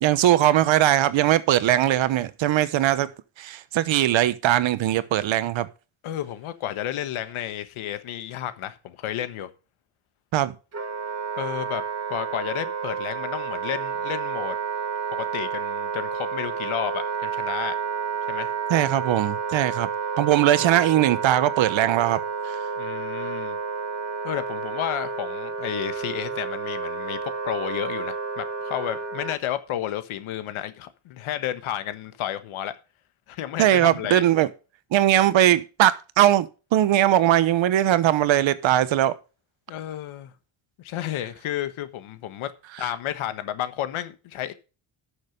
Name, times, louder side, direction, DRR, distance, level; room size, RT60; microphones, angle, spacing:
voice 1, 0.0-3.1 3.4-5.7 10.3-10.5 18.7-19.9 20.2-22.2 22.4-22.6 33.6-34.5 34.9-39.1, right 12 dB, 65° right, 1.1 m, -20 dB
voice 2, 6.0-9.5 11.4-14.6 15.1-17.8 18.3-18.5 22.8-23.6 24.2-32.7 33.3-34.2 39.7-40.3 40.8-42.5 42.8-44.5, left 11 dB, 80° left, 1.4 m, -32 dB
Wind instrument woodwind instrument, 10.7-29.4, right 6 dB, 30° right, 1.8 m, -30 dB
12.0 x 6.6 x 5.2 m
cardioid pair, 105°, 48 cm